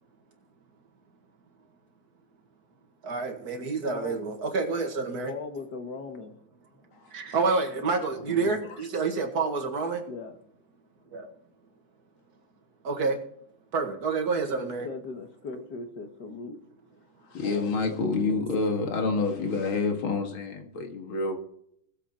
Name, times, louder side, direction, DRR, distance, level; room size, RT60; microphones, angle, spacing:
voice 1, 3.0-5.3 7.1-10.0 11.1-11.3 12.8-13.2 13.7-14.9 15.5-15.6, right 4 dB, 50° right, 4 dB, 2.4 m, -28 dB
voice 2, 3.8-4.2 5.3-6.3 10.1-10.4 14.5-16.6 17.4-18.5 19.1-19.5, left 4 dB, 55° left, 6 dB, 2.0 m, -39 dB
voice 3, 17.3-21.4, left 3 dB, 85° left, 4 dB, 2.7 m, -28 dB
19.5 x 7.7 x 4.4 m, 0.69 s
omnidirectional pair, 2.2 m